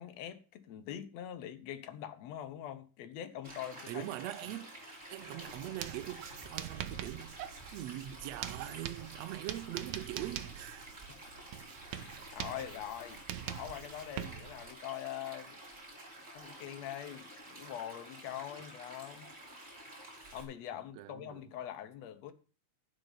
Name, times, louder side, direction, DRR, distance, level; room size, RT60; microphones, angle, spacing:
voice 1, 0.0-4.1 11.1-11.2 11.9-15.6 16.3-19.3 20.3-22.3, left 11 dB, 70° left, 1.8 m, -43 dB
Stream, 3.4-20.4, right 1 dB, 10° right, 6.6 m, -50 dB
voice 2, 3.9-4.7 5.1-10.9 21.0-21.4, right 14 dB, 85° right, 1.5 m, -42 dB
Writing, 5.4-14.7, right 11 dB, 70° right, 1.7 m, -44 dB
11.0 x 5.4 x 8.6 m
omnidirectional pair, 3.9 m